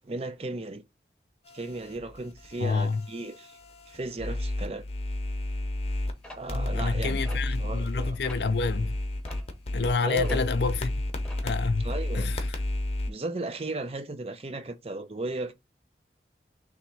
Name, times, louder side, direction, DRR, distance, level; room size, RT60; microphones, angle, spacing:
voice 1, 0.0-0.8 1.5-3.6 3.9-4.8 6.3-8.2 10.0-10.4 11.8-12.3 13.1-15.5, right 2 dB, 35° right, 0.5 m, -35 dB
sound 1, 1.5-6.1 6.5-13.1, left 1 dB, 35° left, 0.8 m, -32 dB
voice 2, 2.6-3.0 6.5-9.0 9.7-10.9 11.4-11.9 12.1-12.4, left 4 dB, 70° left, 0.5 m, -28 dB
sound 2, 6.2-7.9 8.2-8.5 9.2-10.7 10.9-11.6, left 1 dB, 5° left, 0.9 m, -47 dB
3.6 x 3.0 x 4.4 m
head